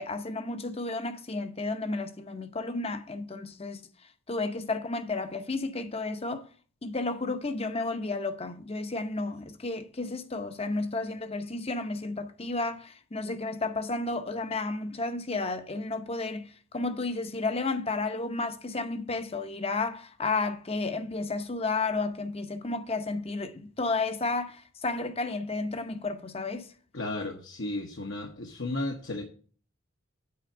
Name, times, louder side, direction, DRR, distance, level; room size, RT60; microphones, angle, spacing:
voice 1, 0.0-3.8 4.3-6.4 6.8-26.7, left 3 dB, 30° left, 0.8 m, -32 dB
voice 2, 26.9-29.2, left 2 dB, 60° left, 1.1 m, -34 dB
8.7 x 4.4 x 7.3 m
head